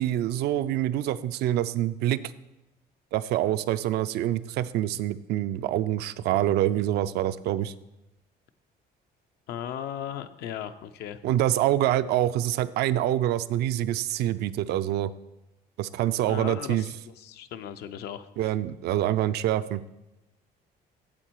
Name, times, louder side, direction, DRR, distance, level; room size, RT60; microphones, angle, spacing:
voice 1, 0.0-2.2 3.1-7.7 11.2-15.1 15.8-16.8 18.4-19.8, right 13 dB, 75° right, 14 dB, 0.4 m, -26 dB
voice 2, 9.5-11.2 16.2-18.5, left 9 dB, 75° left, 10 dB, 0.6 m, -37 dB
8.6 x 7.3 x 4.5 m, 0.97 s
cardioid pair, 110°, 17 cm